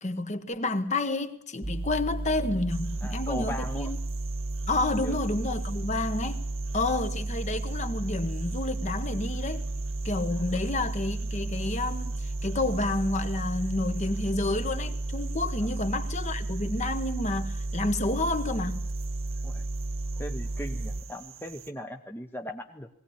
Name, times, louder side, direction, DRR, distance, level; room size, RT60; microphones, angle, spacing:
voice 1, 0.0-4.0 4.7-6.4 6.7-9.6 10.0-18.9, left 2 dB, 35° left, 1.3 m, -30 dB
sound 1, 1.6-21.0, right 2 dB, 25° right, 1.3 m, -33 dB
sound 2, 2.7-21.7, right 8 dB, 75° right, 1.6 m, -48 dB
voice 2, 3.0-3.9 5.0-5.2 10.5-10.6 15.6-15.7 19.4-19.6 20.2-22.9, left 1 dB, 10° left, 0.9 m, -38 dB
20.0 x 18.0 x 9.9 m
head